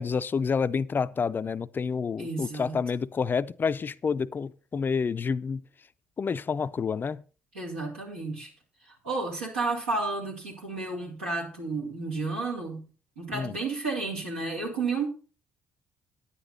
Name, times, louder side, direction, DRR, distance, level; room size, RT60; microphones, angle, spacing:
voice 1, 0.0-5.6 6.2-7.2 13.3-13.5, left 5 dB, 30° left, 0.4 m, -29 dB
voice 2, 2.2-2.8 7.5-8.5 8.8-12.8 13.1-15.1, right 3 dB, 85° right, 3.4 m, -32 dB
10.0 x 10.0 x 4.1 m
figure-of-eight pair, 50°, 6 cm